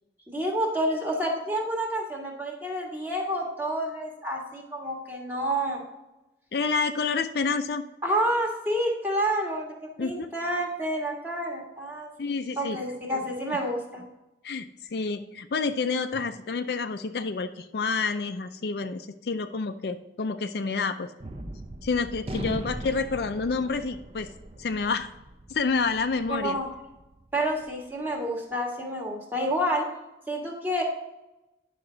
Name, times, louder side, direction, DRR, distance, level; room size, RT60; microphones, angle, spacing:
voice 1, 0.3-5.8 8.0-12.1 12.6-14.0 26.3-26.7 27.3-29.9 30.3-30.8, right 1 dB, 10° right, -1 dB, 1.6 m, -29 dB
voice 2, 6.5-7.8 10.0-10.3 12.2-12.8 14.4-21.1 21.8-24.3 24.6-25.1 25.5-26.6, left 4 dB, 60° left, 8 dB, 0.4 m, -28 dB
Gunshot gunfire, 21.2-27.8, right 1 dB, 30° right, 0.6 m, -40 dB
9.8 x 5.8 x 3.8 m, 0.97 s
head